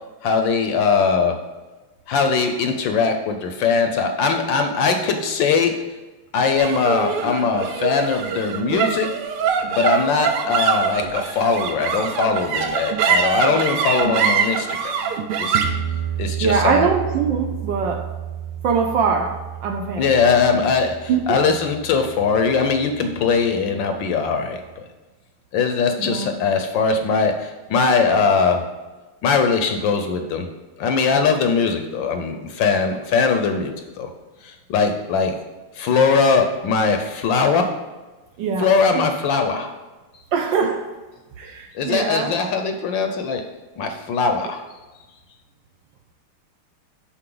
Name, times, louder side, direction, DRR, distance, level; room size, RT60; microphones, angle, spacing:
voice 1, 0.2-1.3 2.1-5.7 6.3-9.1 9.7-15.0 15.3-15.6 16.2-16.9 20.0-24.8 25.5-28.6 29.2-30.5 30.8-34.1 34.4-35.3 35.7-37.7 38.6-39.7 41.7-43.4 43.8-44.6, left 5 dB, 70° left, 6 dB, 1.2 m, -20 dB
sound 1, 6.6-23.1, right 7 dB, 90° right, 1.6 m, -25 dB
voice 2, 16.4-18.1 18.6-20.1 21.1-21.4 26.0-26.3 38.4-39.0 40.3-40.8 41.4-42.4, right 5 dB, 70° right, 4 dB, 1.2 m, -22 dB
11.5 x 4.3 x 3.8 m, 1.2 s
omnidirectional pair, 2.4 m